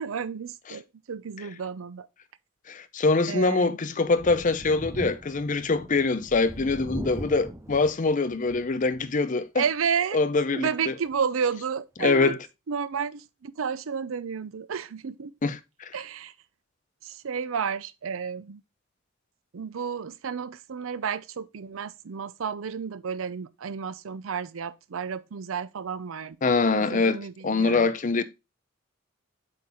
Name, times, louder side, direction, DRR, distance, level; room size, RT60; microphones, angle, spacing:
voice 1, 0.0-2.1 3.3-3.8 9.6-10.2 10.5-12.3 12.7-15.3 15.9-16.3 17.0-18.6 19.5-27.9, right 6 dB, 90° right, 0.5 m, -31 dB
voice 2, 2.7-9.6 10.1-10.9 12.0-12.4 15.4-15.9 26.4-28.2, left 3 dB, 40° left, 0.6 m, -24 dB
Thunder, 4.1-9.2 9.6-9.7 11.1-11.2, right 1 dB, 15° right, 0.7 m, -40 dB
7.7 x 3.9 x 4.2 m
head